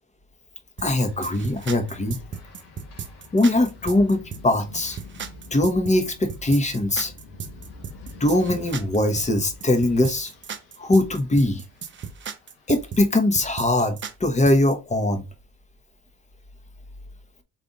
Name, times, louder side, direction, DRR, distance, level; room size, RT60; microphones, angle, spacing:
sound 1, 0.8-13.0, left 2 dB, 85° left, 1.6 m, -47 dB
voice 1, 0.8-2.2 3.3-5.0 5.5-7.1 8.2-10.3 10.8-11.6 12.7-15.2, left 1 dB, 20° left, 1.1 m, -21 dB
sound 2, 0.8-14.7, right 6 dB, 35° right, 0.7 m, -36 dB
4.0 x 3.4 x 3.7 m
supercardioid pair, 80°, 34 cm